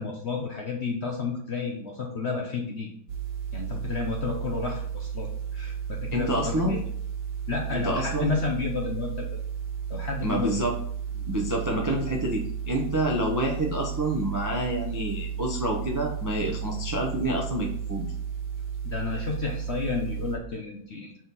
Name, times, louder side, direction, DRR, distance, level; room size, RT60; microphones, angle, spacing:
voice 1, 0.0-2.9 3.5-6.8 7.5-9.3 9.9-10.5 11.2-11.3 18.8-21.2, left 4 dB, 55° left, 1 dB, 0.7 m, -31 dB
sound 1, 3.1-20.4, right 8 dB, 70° right, 1.7 m, -33 dB
voice 2, 6.1-6.8 7.7-8.3 10.2-10.7 11.3-18.1, right 1 dB, 25° right, 0 dB, 0.4 m, -28 dB
4.5 x 4.2 x 5.3 m, 0.65 s
omnidirectional pair, 1.9 m